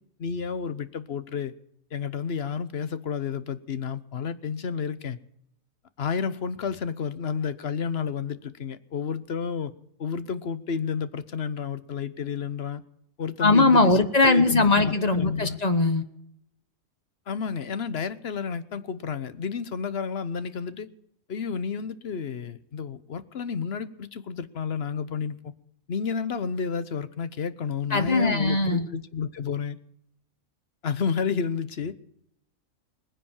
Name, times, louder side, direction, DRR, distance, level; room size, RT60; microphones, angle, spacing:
voice 1, 0.2-1.5 1.9-5.2 6.0-9.7 10.0-12.8 13.2-13.9 14.2-15.6 17.3-20.9 21.3-25.5 25.9-29.8 30.8-31.9, left 6 dB, 55° left, 14 dB, 1.1 m, -31 dB
voice 2, 13.4-16.0 27.9-28.9, left 3 dB, 35° left, 9 dB, 1.2 m, -20 dB
20.0 x 10.0 x 7.2 m, 0.73 s
omnidirectional pair, 1.4 m